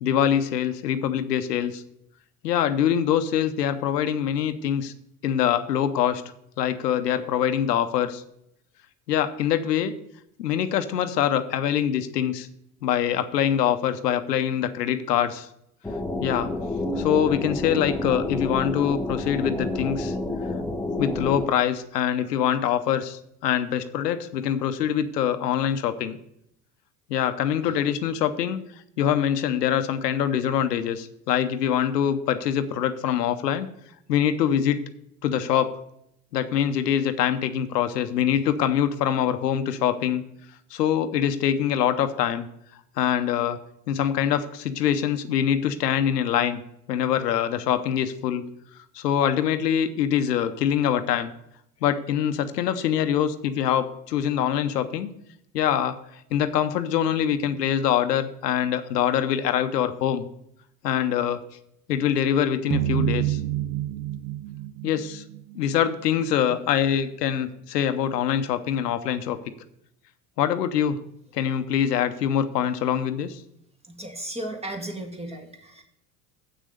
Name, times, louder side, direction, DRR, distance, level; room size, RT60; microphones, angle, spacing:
voice 1, 0.0-1.8 2.4-4.9 5.2-6.2 6.6-8.2 9.1-9.9 10.4-12.5 12.8-15.5 16.2-16.5 17.0-20.2 21.0-26.2 27.1-28.6 29.0-33.7 34.1-34.9 35.2-35.7 36.3-40.2 40.7-42.5 43.0-43.6 43.9-46.6 46.9-48.4 48.9-51.3 51.8-55.1 55.5-60.3 60.8-61.4 61.9-63.4 64.8-65.2 65.5-69.4 70.4-71.0 71.3-73.4, left 9 dB, 85° left, 10 dB, 0.8 m, -24 dB
sound 1, 15.8-21.5, left 2 dB, 5° left, 0.7 m, -29 dB
sound 2, 62.7-65.9, right 12 dB, 55° right, 0.7 m, -28 dB
voice 2, 73.9-75.8, right 1 dB, 15° right, 3 dB, 2.0 m, -35 dB
7.9 x 6.4 x 6.5 m, 0.76 s
hypercardioid pair, 75°, 47 cm